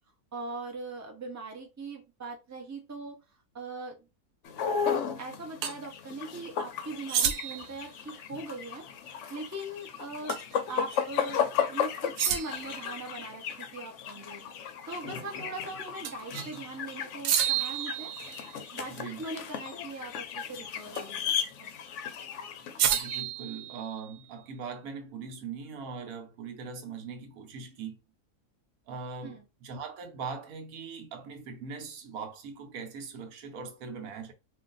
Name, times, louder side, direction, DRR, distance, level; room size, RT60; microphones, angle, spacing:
voice 1, 0.3-3.2 3.5-4.0 5.2-10.3 10.7-14.5 14.9-18.1 18.7-21.7 29.2-29.5, right 2 dB, 25° right, 0.3 m, -41 dB
sound 1, 4.5-23.2, left 7 dB, 65° left, 0.8 m, -35 dB
sound 2, 5.6-5.8 7.1-7.7 10.3-10.5 10.9-11.0 12.2-12.8 16.0-16.6 17.2-18.6 20.9-21.3 22.8-24.2, right 9 dB, 90° right, 1.1 m, -30 dB
voice 2, 18.9-19.2 22.9-28.0 28.9-34.3, right 5 dB, 70° right, 1.1 m, -41 dB
2.5 x 2.5 x 3.8 m
omnidirectional pair, 1.6 m